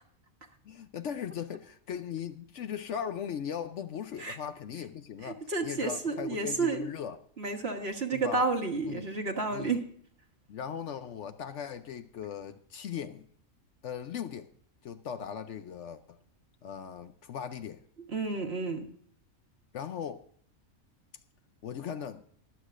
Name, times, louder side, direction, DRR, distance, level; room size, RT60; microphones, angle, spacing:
voice 1, 0.6-7.2 8.1-8.5 8.9-9.0 9.5-9.8 10.5-13.3 13.8-14.5 14.8-16.2 16.6-17.8 19.7-20.2 21.6-22.2, left 8 dB, 65° left, 0.9 m, -38 dB
voice 2, 5.2-6.9 7.4-9.8 18.1-18.9, right 3 dB, 50° right, 1.6 m, -31 dB
23.5 x 8.2 x 2.5 m
omnidirectional pair, 1.4 m